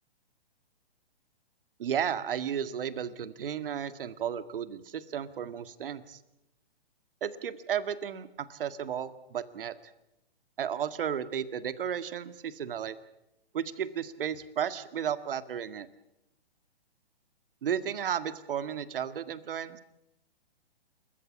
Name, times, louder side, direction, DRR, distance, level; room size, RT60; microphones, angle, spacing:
voice 1, 1.8-6.2 7.2-9.7 10.6-13.0 13.5-15.9 17.6-19.8, right 8 dB, 60° right, 13 dB, 1.8 m, -33 dB
28.5 x 14.5 x 9.5 m, 0.86 s
hypercardioid pair, 135°, 31 cm